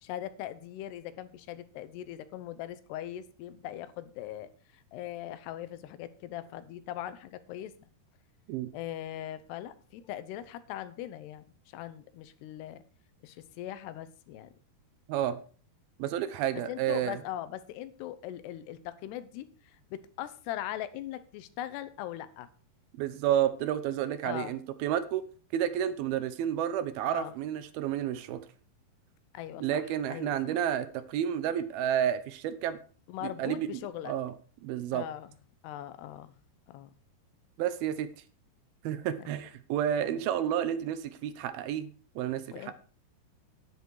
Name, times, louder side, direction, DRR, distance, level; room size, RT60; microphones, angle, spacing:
voice 1, 0.0-7.7 8.7-12.8 13.2-14.5 16.7-22.5 24.2-24.5 27.0-27.4 29.3-30.6 33.1-34.1 34.9-35.3 35.6-36.3 36.7-36.9 39.2-39.5 40.0-40.2 42.5-42.8, left 12 dB, 90° left, 14 dB, 3.0 m, -40 dB
voice 2, 15.1-15.4 16.0-17.2 23.0-25.2 25.5-28.4 29.6-32.8 33.2-33.7 34.1-34.3 34.6-35.0 37.6-38.1 38.8-42.8, right 10 dB, 75° right, 13 dB, 2.6 m, -30 dB
10.5 x 10.5 x 4.7 m, 0.40 s
omnidirectional pair, 4.6 m